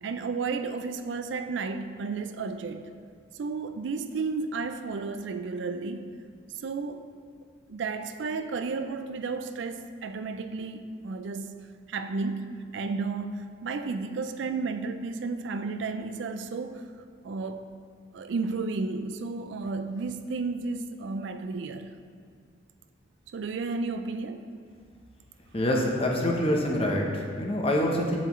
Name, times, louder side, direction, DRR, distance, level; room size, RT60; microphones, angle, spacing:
voice 1, 0.0-2.9 3.3-6.1 6.6-7.1 7.7-11.5 11.9-16.8 17.2-17.6 18.1-21.9 23.3-24.5, right 4 dB, 60° right, 8 dB, 0.4 m, -32 dB
voice 2, 25.5-28.2, left 1 dB, 30° left, 0 dB, 0.8 m, -26 dB
7.8 x 7.3 x 3.1 m, 2.1 s
head